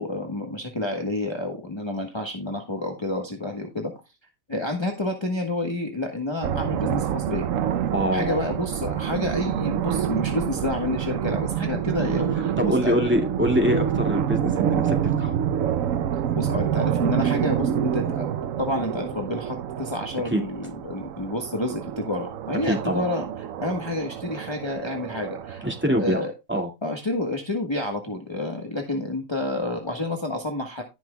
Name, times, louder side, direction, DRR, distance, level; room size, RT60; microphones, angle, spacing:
voice 1, 0.0-3.9 4.5-7.5 8.1-13.0 16.3-18.3 18.6-23.2 23.6-25.6 25.9-26.3 26.8-30.8, left 1 dB, 20° left, 2 dB, 1.3 m, -29 dB
sound 1, 6.4-26.1, right 9 dB, 75° right, 1.1 m, -27 dB
voice 2, 7.9-8.5 12.6-15.4 20.3-20.4 22.7-23.1 25.6-26.7, equal, 10° right, 2 dB, 2.0 m, -24 dB
17.0 x 6.1 x 2.3 m, 0.25 s
omnidirectional pair, 1.4 m